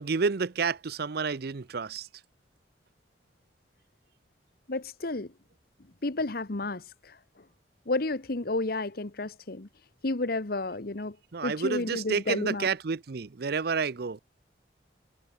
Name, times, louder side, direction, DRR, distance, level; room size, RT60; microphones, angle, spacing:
voice 1, 0.0-2.1 11.3-14.2, right 5 dB, 60° right, 0.6 m, -30 dB
voice 2, 4.7-5.3 6.0-7.2 7.9-9.7 10.0-11.2 11.4-12.7, left 2 dB, 55° left, 1.2 m, -31 dB
head